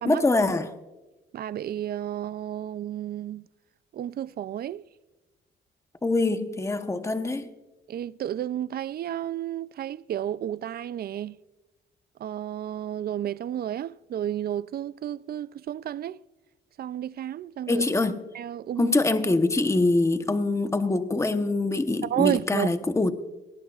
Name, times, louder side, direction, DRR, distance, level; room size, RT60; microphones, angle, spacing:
voice 1, 0.0-0.7 6.0-7.5 17.7-18.3 18.8-23.1, left 2 dB, 15° left, 0.9 m, -24 dB
voice 2, 1.3-3.5 3.9-4.8 7.9-11.4 12.2-16.2 16.8-17.8 18.3-19.0 22.0-22.7, right 11 dB, 50° right, 0.4 m, -31 dB
18.5 x 18.5 x 2.4 m
cardioid pair, 90°, 20 cm